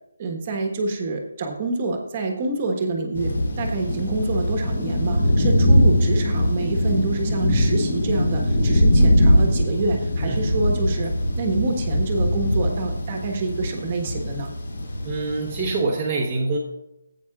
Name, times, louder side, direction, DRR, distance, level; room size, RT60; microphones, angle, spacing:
voice 1, 0.2-11.1 11.4-14.5, right 3 dB, 25° right, 3 dB, 1.3 m, -27 dB
sound 1, 3.2-15.8, equal, 75° left, 3.3 m, -21 dB
voice 2, 15.0-16.6, right 3 dB, 10° right, -7 dB, 1.0 m, -25 dB
15.5 x 8.6 x 2.4 m, 0.93 s
hypercardioid pair, 175°, 0 cm